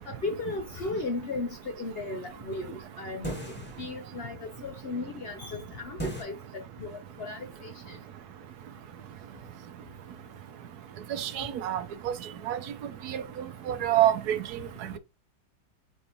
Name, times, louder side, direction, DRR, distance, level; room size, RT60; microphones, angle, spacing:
voice 1, 0.1-3.3 3.8-8.0, left 3 dB, 60° left, 0.6 m, -36 dB
sound 1, 3.2-4.1 6.0-6.2, right 1 dB, 5° left, 1.5 m, -35 dB
voice 2, 11.1-11.8 12.5-12.6 13.1-13.2 13.7-14.4, right 12 dB, 75° right, 1.1 m, -26 dB
4.4 x 4.3 x 2.7 m
omnidirectional pair, 1.8 m